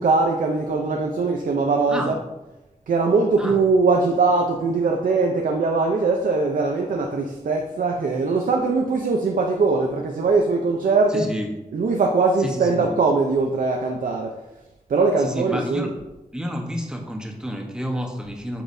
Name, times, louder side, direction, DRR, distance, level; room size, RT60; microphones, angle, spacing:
voice 1, 0.0-2.2 2.9-11.3 11.7-14.4 14.9-15.9, right 3 dB, 80° right, 2 dB, 0.7 m, -21 dB
voice 2, 11.1-11.5 12.4-12.9 15.2-15.9 16.3-18.6, equal, 5° right, 1 dB, 1.0 m, -30 dB
8.2 x 6.0 x 2.7 m, 1.0 s
wide cardioid pair, 125°, 14 cm